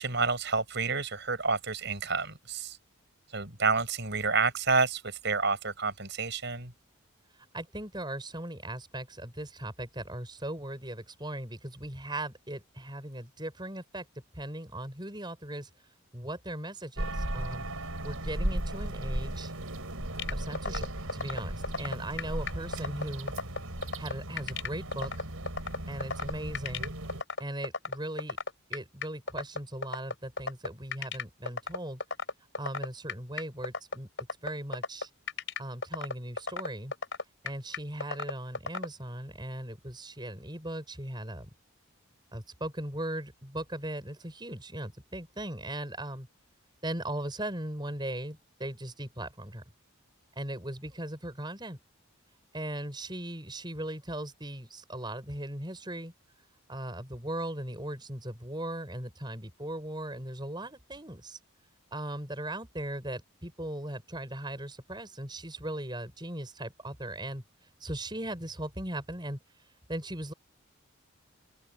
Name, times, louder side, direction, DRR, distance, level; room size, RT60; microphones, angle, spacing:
voice 1, 0.0-2.8 3.3-6.7, right 4 dB, 55° right, 7.0 m, -29 dB
voice 2, 7.3-14.1 14.3-15.7 16.1-19.5 20.3-23.3 24.0-25.1 25.9-27.0 27.4-28.4 28.7-32.0 32.6-34.1 34.4-35.1 35.6-36.9 37.4-41.5 42.3-46.3 46.8-49.6 50.3-51.8 52.5-56.1 56.7-61.4 61.9-67.4 67.8-69.4 69.9-70.3, right 1 dB, 20° right, 6.9 m, -38 dB
sound 1, 17.0-27.2, right 1 dB, 75° right, 4.4 m, -36 dB
sound 2, 20.2-38.9, left 4 dB, 55° left, 6.4 m, -33 dB
open air
head